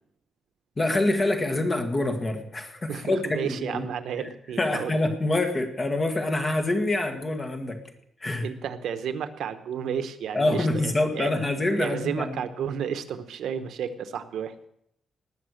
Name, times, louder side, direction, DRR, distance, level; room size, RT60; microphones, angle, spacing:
voice 1, 0.8-3.8 4.6-7.8 8.2-8.5 10.3-12.4, left 2 dB, 20° left, 5 dB, 1.5 m, -26 dB
voice 2, 2.9-5.0 8.4-11.3 11.8-14.5, right 8 dB, 80° right, 10 dB, 0.9 m, -32 dB
19.5 x 6.6 x 6.4 m, 0.75 s
wide cardioid pair, 170°, 0 cm